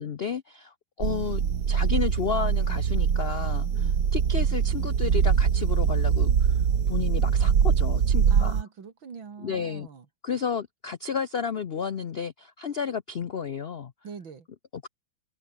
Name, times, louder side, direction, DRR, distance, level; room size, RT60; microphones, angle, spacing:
voice 1, 0.0-6.6 6.9-8.6 9.4-9.9 10.2-13.9 14.7-14.9, left 6 dB, 75° left, 0.5 m, -32 dB
sound 1, 1.0-8.6, right 7 dB, 60° right, 2.1 m, -23 dB
voice 2, 8.3-10.0 14.0-14.5, right 6 dB, 85° right, 3.3 m, -42 dB
open air
omnidirectional pair, 2.1 m